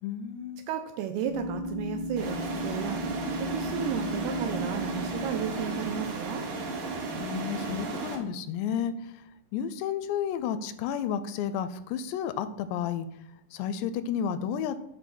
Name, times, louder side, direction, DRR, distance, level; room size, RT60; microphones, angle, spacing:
voice 1, 0.0-0.7 7.2-9.2 9.5-13.1 13.5-14.8, left 8 dB, 85° left, 12 dB, 2.6 m, -32 dB
voice 2, 0.7-3.0 3.4-6.5, right 8 dB, 80° right, 7 dB, 2.3 m, -33 dB
sound 1, 1.2-7.0, left 1 dB, 35° left, 1.0 m, -36 dB
sound 2, 2.2-8.2, right 3 dB, 60° right, 2.7 m, -34 dB
8.3 x 3.2 x 6.0 m, 0.77 s
omnidirectional pair, 4.9 m